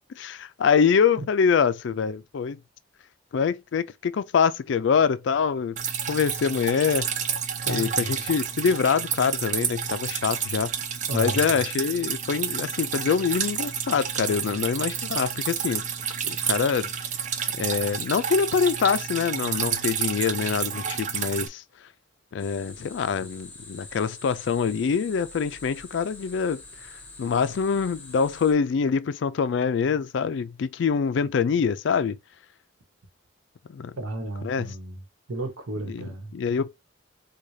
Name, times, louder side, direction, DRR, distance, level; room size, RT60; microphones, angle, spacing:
voice 1, 0.2-2.6 3.3-5.8 6.1-7.1 7.7-10.7 11.1-15.8 16.2-16.9 17.6-21.6 22.3-26.6 27.2-32.2 33.7-33.9 34.4-34.7 35.9-36.7, left 6 dB, 60° left, 0.3 m, -25 dB
Drip, 5.8-21.5, right 7 dB, 35° right, 0.4 m, -30 dB
voice 2, 7.7-8.2 11.1-11.6 34.0-35.0 35.3-36.3, right 2 dB, 90° right, 1.1 m, -33 dB
sound 1, 22.4-28.5, left 3 dB, 10° left, 1.1 m, -45 dB
4.7 x 2.3 x 2.7 m
head